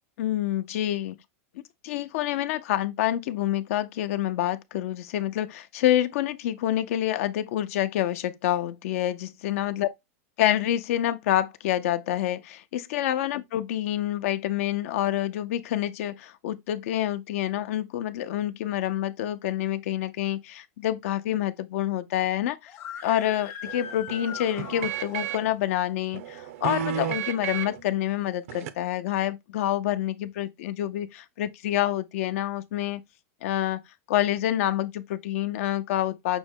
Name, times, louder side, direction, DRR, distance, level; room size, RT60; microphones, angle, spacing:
voice 1, 0.2-1.2 1.8-9.9 10.4-22.7 23.0-33.0 33.4-33.8 34.1-36.4, left 12 dB, 65° left, 0.5 m, -27 dB
Screaming, 22.7-25.5, left 8 dB, 30° left, 0.7 m, -40 dB
sound 1, 23.6-25.5 26.1-27.8 28.5-28.7, right 10 dB, 70° right, 0.6 m, -33 dB
6.0 x 2.1 x 3.6 m
supercardioid pair, 140°, 8 cm